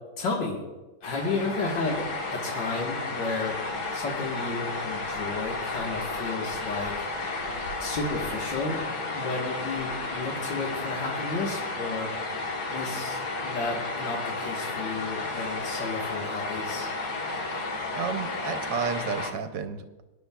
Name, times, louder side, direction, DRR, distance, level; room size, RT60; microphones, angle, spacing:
voice 1, 0.2-0.6 1.0-7.4 7.8-8.8 9.1-12.1 12.7-13.2 13.4-16.9, left 3 dB, 90° left, -2 dB, 2.2 m, -32 dB
sound 1, 1.0-19.3, left 3 dB, 65° left, 1.8 m, -32 dB
voice 2, 17.9-20.0, right 6 dB, 80° right, 7 dB, 1.5 m, -32 dB
20.5 x 10.5 x 2.3 m, 1.1 s
omnidirectional pair, 1.9 m